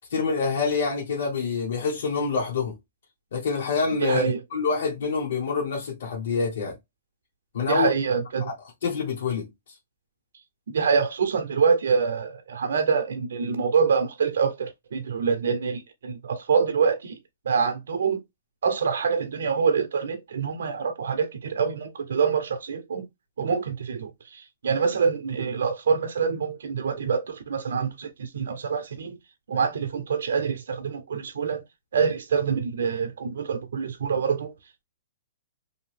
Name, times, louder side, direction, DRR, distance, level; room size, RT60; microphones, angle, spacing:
voice 1, 0.1-2.8 3.3-6.7 7.5-7.9 8.8-9.5, left 5 dB, 65° left, 1.2 m, -26 dB
voice 2, 4.0-4.4 7.7-8.5 10.7-17.2 17.4-18.2 18.6-23.1 23.4-29.2 29.5-31.6 31.9-34.5, right 6 dB, 80° right, 0.5 m, -25 dB
2.6 x 2.6 x 3.3 m
hypercardioid pair, 160°, 0 cm